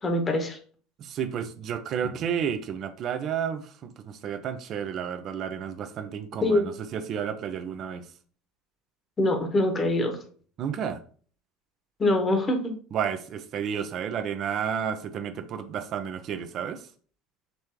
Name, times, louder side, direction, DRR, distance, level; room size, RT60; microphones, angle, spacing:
voice 1, 0.0-0.6 6.4-6.7 9.2-10.2 12.0-12.7, left 1 dB, 30° left, 1.4 m, -24 dB
voice 2, 1.0-8.1 10.6-11.0 12.9-16.9, right 8 dB, 50° right, 0.6 m, -31 dB
5.3 x 3.2 x 3.0 m
hypercardioid pair, 70°, 0 cm